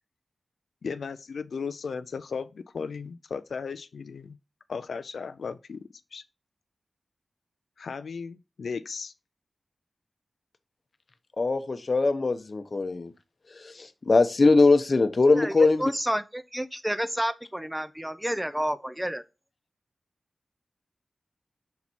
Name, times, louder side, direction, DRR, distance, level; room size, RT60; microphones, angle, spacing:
voice 1, 0.8-4.4 4.7-5.8 6.1-6.2 7.8-9.1, left 5 dB, 85° left, 0.3 m, -36 dB
voice 2, 11.4-13.1 13.6-15.8, left 3 dB, 50° left, 0.8 m, -21 dB
voice 3, 15.3-19.2, equal, 5° right, 0.5 m, -30 dB
5.7 x 4.1 x 4.4 m
cardioid pair, 60°, 0 cm